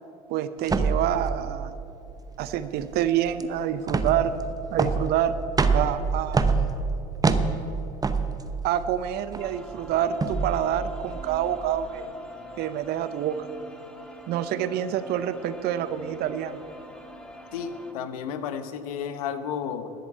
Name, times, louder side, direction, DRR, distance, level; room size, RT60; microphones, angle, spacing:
voice 1, 0.3-1.8 2.4-4.3 4.7-5.4 5.7-6.6 8.6-12.1 12.6-13.4 14.3-16.6, right 10 dB, 60° right, 13 dB, 0.8 m, -27 dB
sound 1, 0.6-11.9, right 4 dB, 20° right, 0.8 m, -27 dB
sound 2, 9.4-17.9, equal, 5° left, 1.5 m, -45 dB
voice 2, 17.5-19.9, left 7 dB, 80° left, 10 dB, 0.9 m, -32 dB
10.5 x 8.0 x 8.4 m, 2.7 s
hypercardioid pair, 75°, 18 cm